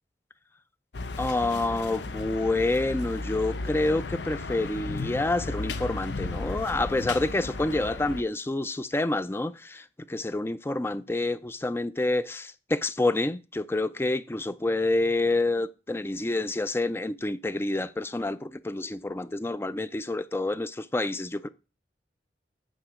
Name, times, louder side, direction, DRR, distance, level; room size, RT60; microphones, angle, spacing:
sound 1, 0.9-8.2, left 3 dB, 80° left, 0.7 m, -35 dB
voice 1, 1.2-21.5, left 2 dB, 15° left, 0.4 m, -28 dB
9.0 x 5.0 x 4.7 m
head